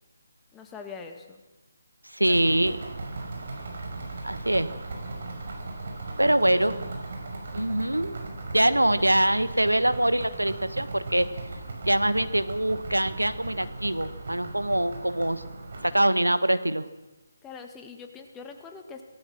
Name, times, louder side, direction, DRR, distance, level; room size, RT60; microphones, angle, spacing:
voice 1, 0.5-1.4 2.3-2.4 6.4-7.0 17.4-19.0, left 5 dB, 10° left, 4 dB, 1.9 m, -43 dB
voice 2, 2.1-2.8 4.2-4.7 6.2-6.7 7.5-8.2 8.5-11.3 11.9-15.4 15.8-16.9, right 1 dB, 80° right, 13 dB, 1.3 m, -24 dB
sound 1, 2.2-15.9, right 2 dB, 45° right, 5.9 m, -38 dB
26.5 x 18.5 x 6.3 m, 1.1 s
figure-of-eight pair, 145°, 0 cm